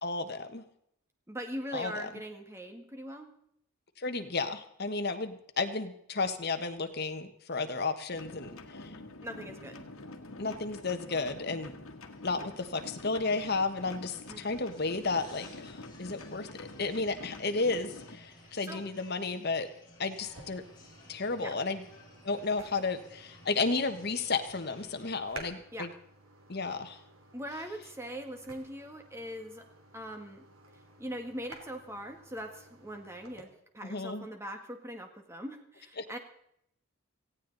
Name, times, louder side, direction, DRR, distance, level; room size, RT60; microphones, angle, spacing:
voice 1, 0.0-0.6 1.7-2.1 4.0-8.9 10.4-11.7 12.2-19.7 20.0-20.6 21.1-21.8 22.2-25.9 26.5-27.0 33.8-34.3 36.0-36.1, left 3 dB, 50° left, 8 dB, 1.3 m, -33 dB
voice 2, 1.3-3.3 9.2-9.9 14.3-14.5 18.4-18.8 21.4-21.6 25.7-25.9 27.3-29.7 29.9-30.4 31.0-36.2, equal, 10° right, 5 dB, 1.7 m, -41 dB
sound 1, 8.1-18.2, left 2 dB, 80° left, 1.7 m, -47 dB
sound 2, 12.0-25.1, left 2 dB, 20° left, 4.7 m, -57 dB
sound 3, 20.2-33.4, right 2 dB, 80° right, 2.9 m, -54 dB
18.0 x 15.5 x 4.0 m, 0.72 s
head